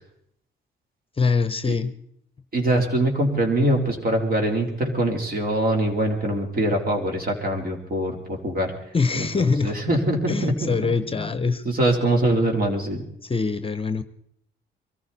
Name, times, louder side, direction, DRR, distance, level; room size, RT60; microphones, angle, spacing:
voice 1, 1.2-1.9 8.9-9.7 10.3-11.6 13.3-14.0, left 4 dB, 25° left, 12 dB, 0.8 m, -23 dB
voice 2, 2.5-11.3 11.6-13.0, right 1 dB, 50° right, 2 dB, 3.8 m, -23 dB
23.5 x 14.5 x 4.2 m, 0.69 s
cardioid pair, 90°, 20 cm